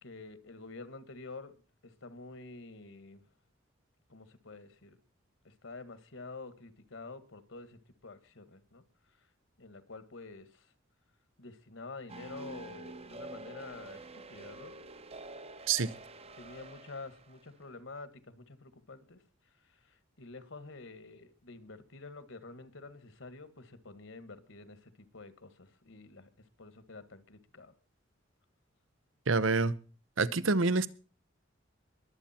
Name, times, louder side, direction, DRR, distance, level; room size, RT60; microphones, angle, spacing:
voice 1, 0.0-1.6 1.8-3.2 4.1-5.0 5.4-8.8 9.6-10.7 11.4-14.9 16.4-19.2 19.9-26.3 26.6-27.7, left 3 dB, 70° left, 1.8 m, -48 dB
sound 1, 12.1-17.4, right 2 dB, 30° right, 0.9 m, -47 dB
voice 2, 29.3-29.7 30.2-30.9, right 4 dB, 75° right, 0.8 m, -27 dB
22.0 x 8.6 x 4.4 m
head